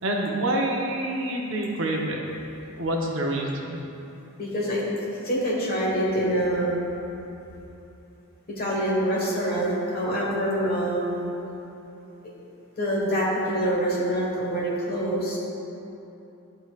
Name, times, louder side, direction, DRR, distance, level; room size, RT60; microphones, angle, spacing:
voice 1, 0.0-2.2 2.8-3.8, right 1 dB, 60° right, -1 dB, 0.7 m, -27 dB
voice 2, 4.4-4.9 5.2-6.7 8.6-11.3 12.8-15.4, right 1 dB, 45° left, -5 dB, 1.3 m, -25 dB
11.5 x 3.9 x 2.4 m, 3.0 s
head